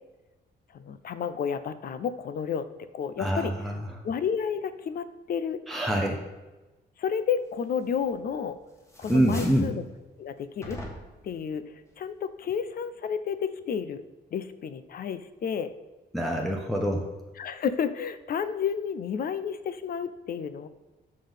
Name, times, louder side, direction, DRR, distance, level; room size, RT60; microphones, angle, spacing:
voice 1, 0.7-2.7 2.9-3.5 4.0-5.6 7.0-8.6 9.0-9.8 10.2-10.8 11.2-14.0 14.3-15.7 17.4-20.7, left 7 dB, 55° left, 13 dB, 0.5 m, -31 dB
voice 2, 3.2-3.8 5.7-6.2 9.1-9.7 16.1-17.1, right 1 dB, ahead, 0 dB, 0.7 m, -25 dB
sound 1, 8.0-8.5 8.8-9.8 10.6-11.3, equal, 15° left, 1.4 m, -41 dB
5.7 x 5.3 x 5.5 m, 1.1 s
cardioid pair, 125°, 18 cm